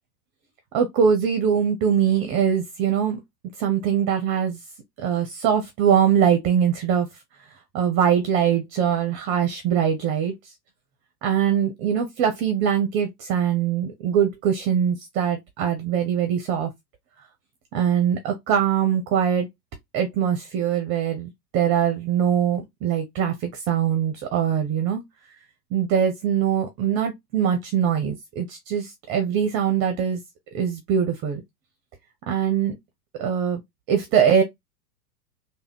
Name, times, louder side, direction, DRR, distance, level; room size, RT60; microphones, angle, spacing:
voice 1, 0.7-3.2 3.6-4.6 5.0-7.1 7.7-10.3 11.2-16.7 17.7-19.5 19.9-25.0 25.7-30.2 30.5-31.4 32.3-32.8 33.2-33.6 33.9-34.4, right 8 dB, 25° right, 0.7 m, -22 dB
3.4 x 2.2 x 3.5 m
hypercardioid pair, 110°, 49 cm